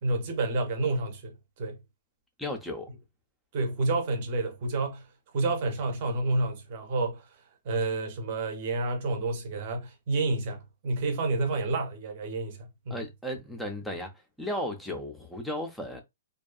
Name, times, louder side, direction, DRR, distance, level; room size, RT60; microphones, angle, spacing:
voice 1, 0.0-1.8 3.5-5.1 5.3-7.3 7.6-13.1, right 2 dB, 35° right, 0.7 m, -29 dB
voice 2, 2.4-2.9 12.9-14.1 14.4-16.0, left 1 dB, ahead, 0.5 m, -35 dB
2.6 x 2.3 x 2.3 m
hypercardioid pair, 170°, 0 cm